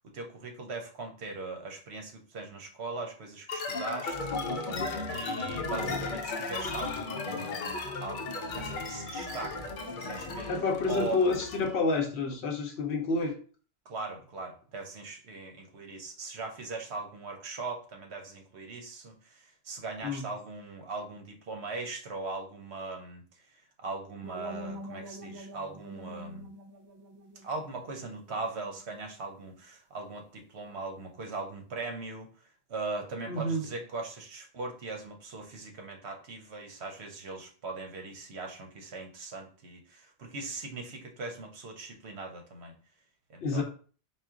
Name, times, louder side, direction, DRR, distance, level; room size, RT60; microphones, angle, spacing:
voice 1, 0.0-4.8 5.1-7.7 8.0-9.6 9.9-10.5 10.8-11.2 13.9-23.2 23.8-26.5 27.4-32.3 32.7-42.7 43.3-43.6, right 3 dB, 80° right, 3 dB, 1.1 m, -40 dB
sound 1, 3.5-11.8, left 3 dB, 55° left, 0.6 m, -35 dB
voice 2, 10.5-13.4 20.0-20.3 33.3-33.6 43.4-43.6, left 3 dB, 80° left, 2 dB, 0.9 m, -29 dB
sound 2, 24.2-29.2, right 1 dB, 35° right, 0.5 m, -46 dB
4.2 x 2.1 x 3.6 m, 0.41 s
omnidirectional pair, 1.1 m